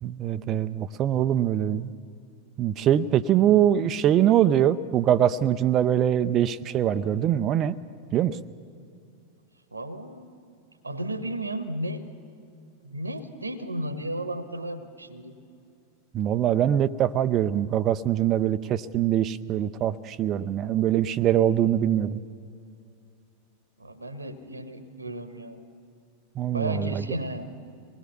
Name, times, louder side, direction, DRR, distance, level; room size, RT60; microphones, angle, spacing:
voice 1, 0.0-1.9 2.6-7.8 8.1-8.4 16.1-22.2 26.4-27.0, right 11 dB, 30° right, 13 dB, 0.6 m, -23 dB
voice 2, 9.7-10.3 10.8-12.2 12.8-15.4 23.8-25.6 26.5-27.5, right 1 dB, 80° right, 12 dB, 1.2 m, -34 dB
24.5 x 20.0 x 7.0 m, 2.4 s
figure-of-eight pair, 90°, 0 cm